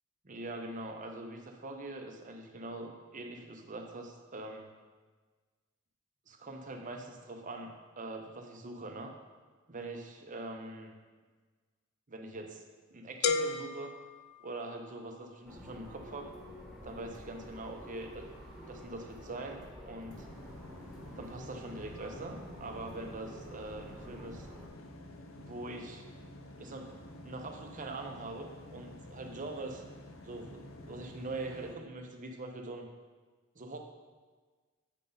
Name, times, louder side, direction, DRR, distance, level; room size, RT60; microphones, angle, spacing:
voice 1, 0.2-4.7 6.3-9.1 9.7-10.9 12.1-12.6 12.9-13.9 14.4-16.3 16.8-18.2 18.7-20.3 21.1-24.5 25.3-26.1 26.6-29.8 30.2-32.9 33.5-33.8, right 2 dB, 40° right, 3 dB, 0.8 m, -43 dB
sound 1, 13.2-15.1, left 4 dB, 55° left, 0.4 m, -34 dB
sound 2, 15.5-24.7, equal, 5° right, 1.3 m, -49 dB
sound 3, 20.1-31.7, left 1 dB, 90° left, 0.7 m, -50 dB
8.2 x 5.4 x 3.9 m, 1.4 s
head